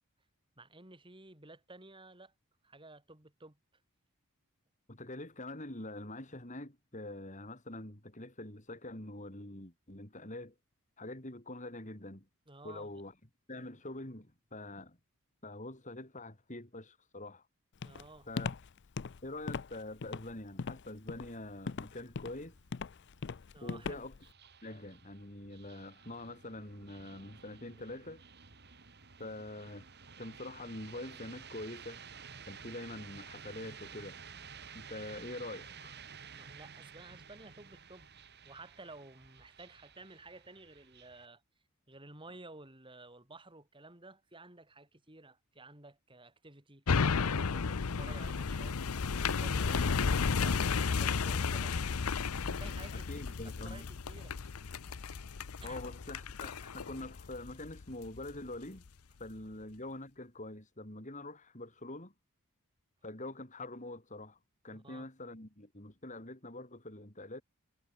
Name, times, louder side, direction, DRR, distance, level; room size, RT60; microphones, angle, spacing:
voice 1, 0.6-2.3 2.6-3.6 12.5-12.9 13.5-13.8 17.8-18.3 23.5-24.0 36.3-38.1 38.4-41.4 41.9-46.8 47.2-48.8 49.1-53.1 53.6-54.4 55.6-55.8 64.7-65.1, right 2 dB, 25° right, 4.4 m, -53 dB
voice 2, 4.9-10.5 11.0-12.3 12.6-13.1 13.5-15.0 15.4-17.4 18.3-18.6 19.2-22.5 23.6-24.1 24.6-28.2 29.2-29.9 30.2-32.0 32.5-34.2 34.7-36.0 52.9-53.9 55.6-58.9 59.2-62.1 63.0-64.4 64.6-67.4, left 2 dB, 35° left, 4.1 m, -45 dB
Walk footsteps, 17.8-24.3, left 5 dB, 55° left, 0.5 m, -40 dB
sound 1, 22.3-41.3, right 6 dB, 50° right, 2.7 m, -53 dB
sound 2, 46.9-58.3 58.8-58.9, left 5 dB, 90° left, 0.7 m, -33 dB
head